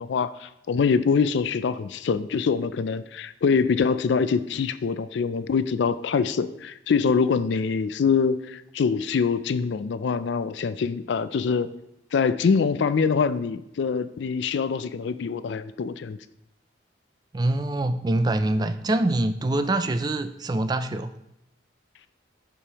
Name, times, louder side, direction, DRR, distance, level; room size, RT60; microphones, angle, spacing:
voice 1, 0.0-11.7 12.1-16.2, left 5 dB, 70° left, 14 dB, 0.4 m, -24 dB
voice 2, 17.3-21.1, right 2 dB, 20° right, 10 dB, 0.3 m, -24 dB
11.5 x 5.0 x 2.9 m, 0.87 s
head